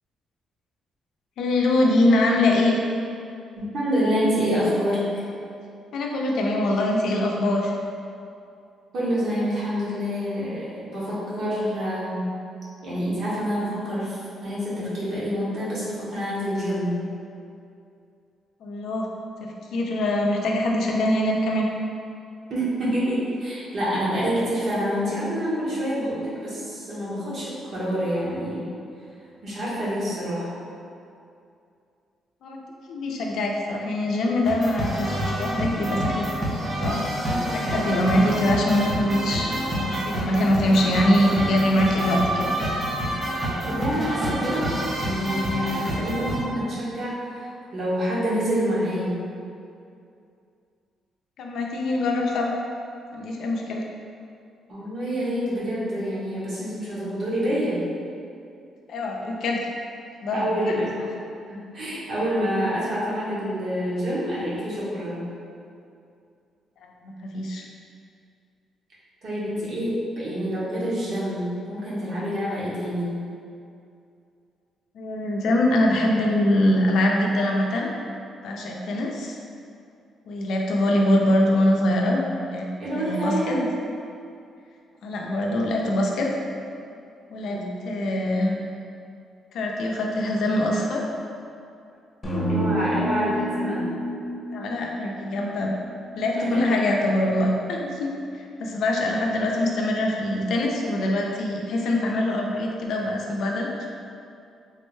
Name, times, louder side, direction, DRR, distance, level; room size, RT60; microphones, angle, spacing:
voice 1, 1.4-2.8 5.9-7.7 18.6-19.1 19.4-21.7 32.4-32.6 32.9-36.5 36.8-37.1 37.5-42.5 51.4-52.5 53.1-53.8 58.9-59.6 60.2-60.8 67.0-67.6 74.9-77.9 78.4-79.4 80.3-82.2 82.5-82.7 82.9-83.6 85.0-86.3 87.3-88.6 89.5-91.0 94.5-95.8 96.2-103.7, left 1 dB, 75° left, 0 dB, 0.4 m, -23 dB
voice 2, 3.6-5.2 8.9-12.2 12.8-16.9 22.5-28.7 29.4-30.5 43.7-44.7 45.0-49.2 54.7-57.8 60.3-61.0 61.5-65.2 69.2-73.1 82.8-83.6 87.5-87.8 92.4-93.8 96.3-96.8, equal, 60° right, -9 dB, 1.2 m, -27 dB
sound 1, 34.4-46.4, right 1 dB, 30° right, 0.6 m, -27 dB
sound 2, 92.2-96.4, equal, 25° left, 0.8 m, -29 dB
3.5 x 2.1 x 3.1 m, 2.5 s
cardioid pair, 90°, 0 cm